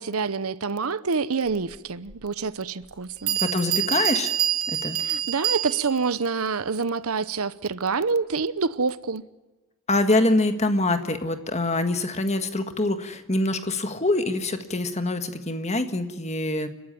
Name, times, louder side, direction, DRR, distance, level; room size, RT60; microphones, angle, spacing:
voice 1, 0.0-3.4 5.0-9.2, right 4 dB, 85° right, 0.8 m, -27 dB
Bell, 2.1-2.2 2.9-3.0 3.3-6.1, right 10 dB, 70° right, 3.9 m, -26 dB
voice 2, 3.4-4.3 4.7-5.0 9.9-16.7, left 2 dB, 30° left, 1.7 m, -25 dB
29.5 x 13.0 x 8.9 m
head